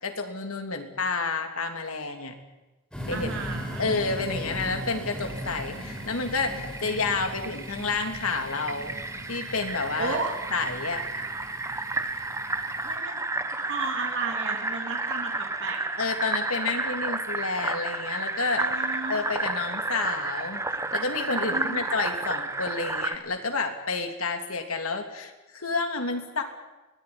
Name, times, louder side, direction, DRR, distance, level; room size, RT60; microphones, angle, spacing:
voice 1, 0.0-2.3 3.1-3.3 3.8-8.9 9.3-10.2 10.5-11.0 16.0-18.7 19.1-26.4, left 3 dB, 80° left, 5 dB, 3.2 m, -30 dB
sound 1, 2.9-12.9, equal, 5° left, 6.9 m, -39 dB
voice 2, 3.1-3.9 10.0-10.3 12.8-13.2 13.5-15.8 18.5-19.2 21.4-21.8, right 4 dB, 60° right, 1 dB, 3.4 m, -33 dB
Fill (with liquid), 5.1-23.2, right 2 dB, 15° right, 1.2 m, -32 dB
23.0 x 17.5 x 9.9 m, 1.1 s
head